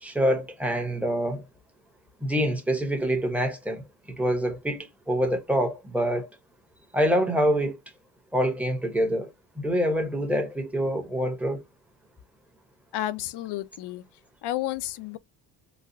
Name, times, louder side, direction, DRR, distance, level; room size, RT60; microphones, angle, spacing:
voice 1, 0.0-1.4 2.2-3.8 4.2-6.3 6.9-7.8 8.3-11.6, equal, 5° right, 0.8 m, -26 dB
voice 2, 12.9-14.0 14.4-15.2, left 14 dB, 75° left, 0.6 m, -31 dB
4.0 x 2.4 x 2.6 m
cardioid pair, 120°, 41 cm